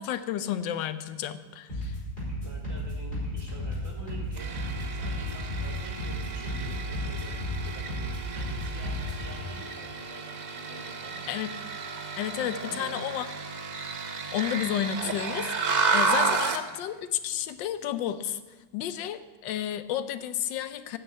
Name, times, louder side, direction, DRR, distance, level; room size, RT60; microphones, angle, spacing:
voice 1, 0.0-2.0 11.3-11.5 12.2-13.3 14.3-18.4 18.7-21.0, left 10 dB, 85° left, 12 dB, 1.3 m, -31 dB
sound 1, 1.7-9.3, equal, 30° left, 4.9 m, -34 dB
voice 2, 2.4-10.3 10.5-11.2 12.5-13.1 16.3-16.8, right 1 dB, 45° right, -1 dB, 2.2 m, -47 dB
sound 2, 4.4-16.7, right 4 dB, 85° right, 0.4 m, -32 dB
9.4 x 6.6 x 8.3 m, 1.2 s
omnidirectional pair, 1.9 m